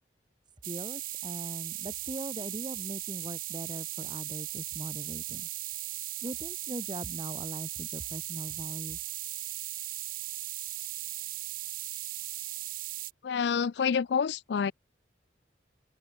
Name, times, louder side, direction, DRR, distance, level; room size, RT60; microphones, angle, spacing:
voice 1, 0.6-5.5 6.2-9.0, right 1 dB, 25° right, 1.9 m, -40 dB
sound 1, 0.6-13.1, right 17 dB, 45° right, 0.4 m, -38 dB
voice 2, 13.2-14.7, left 6 dB, 65° left, 0.4 m, -28 dB
open air
head